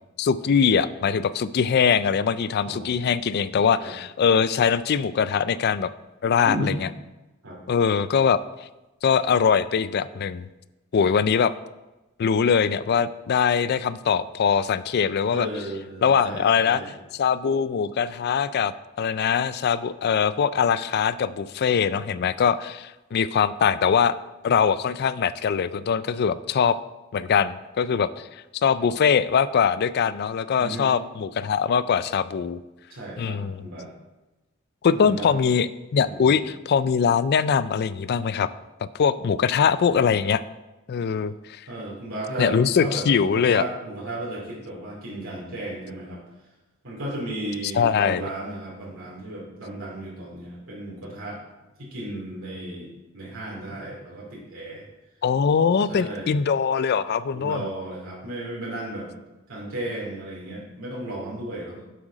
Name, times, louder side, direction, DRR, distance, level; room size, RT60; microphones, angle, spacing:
voice 1, 0.2-5.9 6.2-6.7 7.7-8.4 9.0-10.5 10.9-11.5 12.2-15.5 16.0-16.8 17.1-24.2 24.4-26.8 27.1-28.3 28.6-32.6 33.2-33.7 34.8-38.5 39.0-40.4 40.9-41.6 42.4-43.6 47.7-48.2 55.2-57.6, left 6 dB, 50° left, 15 dB, 0.4 m, -22 dB
voice 2, 2.6-3.0 3.8-3.9 6.4-6.7 7.4-7.6 15.3-16.9 30.6-30.9 32.9-33.9 34.9-35.4 35.9-36.3 41.7-46.2 46.8-51.4 51.8-54.8 55.9-56.4 57.3-59.1 59.5-61.8, right 1 dB, 80° right, -4 dB, 2.6 m, -34 dB
7.8 x 6.2 x 5.0 m, 1.1 s
head